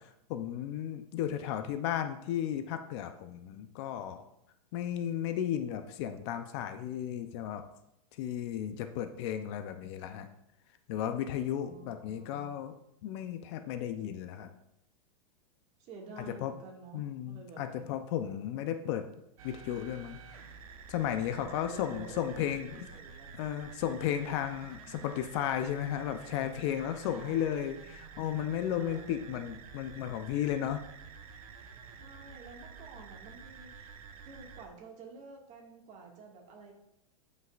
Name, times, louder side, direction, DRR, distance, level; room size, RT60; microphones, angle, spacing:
voice 1, 0.0-4.3 4.7-7.6 8.2-10.3 10.9-12.7 13.0-14.5 16.4-16.5 16.9-19.1 19.4-20.2 20.9-22.8 23.3-30.8, left 10 dB, 50° left, 8 dB, 0.7 m, -34 dB
voice 2, 11.6-12.5 15.8-17.9 21.3-23.3 27.1-27.8 28.8-29.4 32.0-34.0 34.2-36.7, right 4 dB, 40° right, 1 dB, 2.0 m, -50 dB
sound 1, 19.4-34.7, right 6 dB, 75° right, 1.0 m, -50 dB
11.5 x 5.5 x 2.5 m, 0.82 s
supercardioid pair, 140°, 18 cm